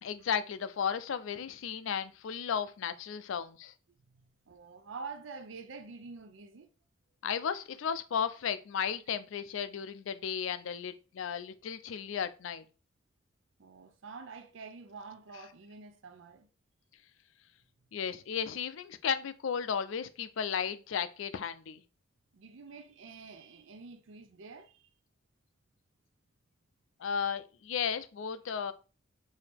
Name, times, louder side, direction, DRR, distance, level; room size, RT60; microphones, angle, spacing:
voice 1, 0.0-3.7 7.2-12.6 17.9-21.8 27.0-28.7, left 7 dB, 85° left, 0.4 m, -34 dB
voice 2, 4.1-6.7 13.6-16.5 22.3-24.9, right 4 dB, 80° right, 0.5 m, -47 dB
4.8 x 2.7 x 3.4 m
head